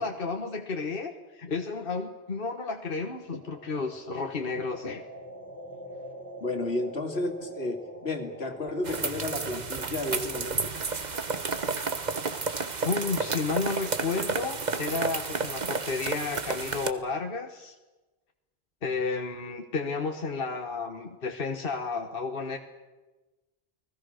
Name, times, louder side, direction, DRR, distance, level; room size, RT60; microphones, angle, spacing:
voice 1, 0.0-5.0 11.6-11.7 12.8-17.7 18.8-22.6, left 4 dB, 60° left, 4 dB, 1.5 m, -32 dB
sound 1, 3.2-11.3, left 1 dB, 10° left, 2.7 m, -45 dB
voice 2, 6.4-10.7, left 2 dB, 80° left, 6 dB, 2.6 m, -32 dB
sound 2, 8.9-16.9, right 4 dB, 45° right, 1.3 m, -31 dB
30.0 x 20.0 x 6.5 m, 1.2 s
omnidirectional pair, 1.0 m